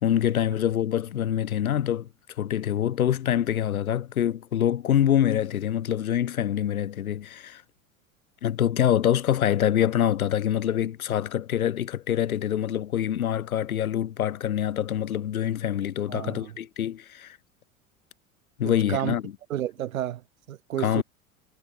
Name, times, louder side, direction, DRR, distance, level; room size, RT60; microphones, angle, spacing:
voice 1, 0.0-2.1 2.4-7.6 8.4-17.4 18.6-19.3 20.8-21.0, left 10 dB, 85° left, 0.5 m, -25 dB
voice 2, 16.1-16.5 18.6-19.1 19.5-20.2 20.5-21.0, right 12 dB, 70° right, 1.3 m, -31 dB
figure-of-eight pair, 75°, 42 cm